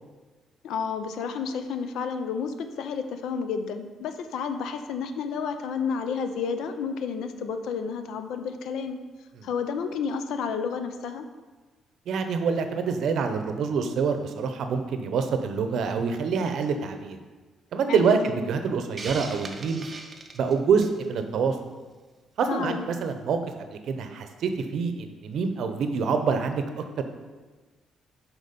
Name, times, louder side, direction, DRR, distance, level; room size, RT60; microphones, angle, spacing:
voice 1, 0.6-9.0 9.4-11.3 17.9-18.3 22.5-22.9, left 6 dB, 80° left, 8 dB, 0.5 m, -31 dB
voice 2, 12.1-17.2 17.7-19.9 20.3-21.6 22.4-26.6 27.0-27.1, right 5 dB, 70° right, 7 dB, 0.7 m, -26 dB
Hiss, 19.0-21.0, right 3 dB, 30° right, 0.8 m, -39 dB
6.6 x 4.4 x 5.2 m, 1.3 s
cardioid pair, 90°, 0 cm